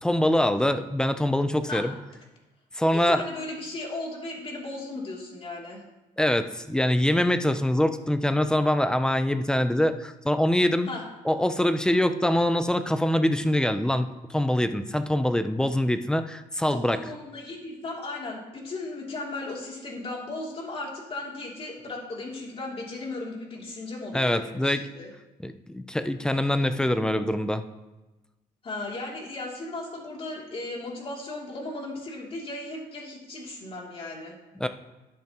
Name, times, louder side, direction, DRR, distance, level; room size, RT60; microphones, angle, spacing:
voice 1, 0.0-1.9 2.7-3.2 6.2-10.9 11.2-17.0 24.1-24.8 25.4-27.6 34.6-34.7, left 1 dB, 5° left, 10 dB, 0.6 m, -24 dB
voice 2, 2.9-5.8 10.9-11.0 16.7-25.1 28.6-34.3, left 2 dB, 35° left, -2 dB, 2.9 m, -36 dB
13.0 x 10.0 x 3.0 m, 1.1 s
cardioid pair, 120°, 17 cm